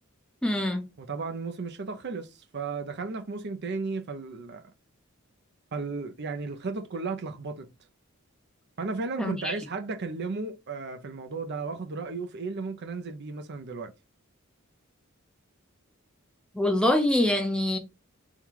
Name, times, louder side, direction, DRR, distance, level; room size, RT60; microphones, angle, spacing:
voice 1, 0.4-0.9 9.2-9.5 16.5-17.8, left 1 dB, 5° left, 0.6 m, -24 dB
voice 2, 1.0-4.7 5.7-7.7 8.8-13.9, right 4 dB, 55° right, 0.6 m, -34 dB
3.7 x 2.3 x 4.5 m
head